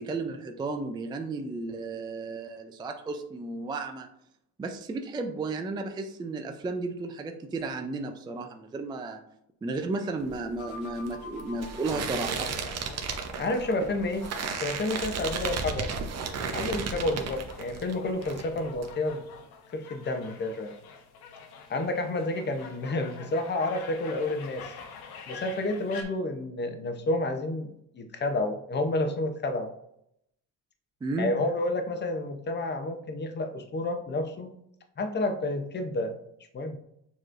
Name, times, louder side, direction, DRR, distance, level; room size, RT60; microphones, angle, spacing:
voice 1, 0.0-4.1 4.6-9.2 9.6-12.5 31.0-31.3, right 3 dB, 10° right, 5 dB, 0.3 m, -33 dB
sound 1, 10.2-17.9 18.2-18.9, right 5 dB, 40° right, 0.7 m, -34 dB
sound 2, 10.6-13.5, left 2 dB, 90° left, 1.6 m, -47 dB
sound 3, 12.3-26.0, left 5 dB, 70° left, 1.0 m, -47 dB
voice 2, 13.4-14.3 14.6-15.9 16.5-19.2 19.7-20.7 21.7-24.7 25.3-29.7 31.2-34.5 35.0-36.2 36.5-36.8, left 2 dB, 25° left, 6 dB, 0.7 m, -30 dB
6.7 x 3.1 x 2.5 m, 0.76 s
cardioid pair, 100°, 39 cm